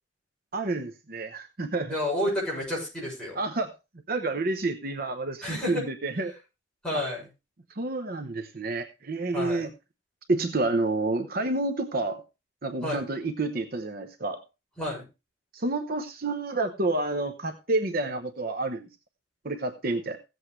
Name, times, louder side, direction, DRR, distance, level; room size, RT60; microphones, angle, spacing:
voice 1, 0.5-2.0 3.3-3.7 4.1-6.3 7.7-9.7 10.3-12.2 12.6-14.4 15.5-18.9 19.4-20.2, right 2 dB, 50° right, 7 dB, 0.9 m, -29 dB
voice 2, 1.9-3.4 5.4-5.8 6.8-7.3 9.3-9.6 12.8-13.0 14.8-15.0, left 1 dB, 5° left, -5 dB, 6.5 m, -30 dB
16.0 x 8.0 x 3.2 m, 0.27 s
head